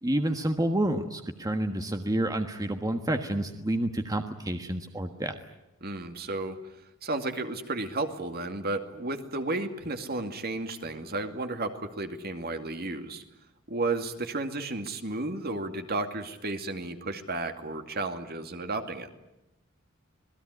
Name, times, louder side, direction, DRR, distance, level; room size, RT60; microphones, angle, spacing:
voice 1, 0.0-5.4, right 1 dB, 15° right, 6 dB, 1.4 m, -29 dB
voice 2, 5.8-6.6 7.0-13.2 13.7-19.1, right 2 dB, 50° right, 7 dB, 2.4 m, -33 dB
27.0 x 19.5 x 9.7 m, 0.91 s
head